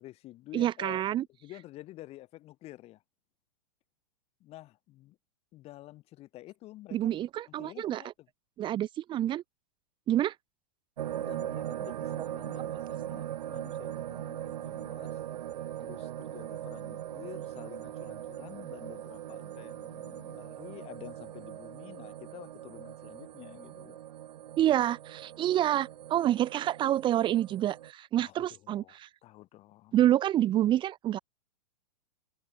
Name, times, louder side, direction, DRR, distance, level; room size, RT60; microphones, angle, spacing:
voice 1, 0.0-1.0 1.4-3.0 4.4-5.2 5.5-7.2 7.6-8.3 11.2-15.2 15.8-24.0 28.2-30.0, left 16 dB, 30° left, 7.6 m, -49 dB
voice 2, 0.5-1.2 6.9-8.0 8.6-9.4 10.1-10.3 24.6-29.1 29.9-31.2, right 12 dB, 20° right, 2.3 m, -27 dB
sound 1, 11.0-27.9, right 11 dB, 75° right, 3.2 m, -40 dB
hypercardioid pair, 155°, 21 cm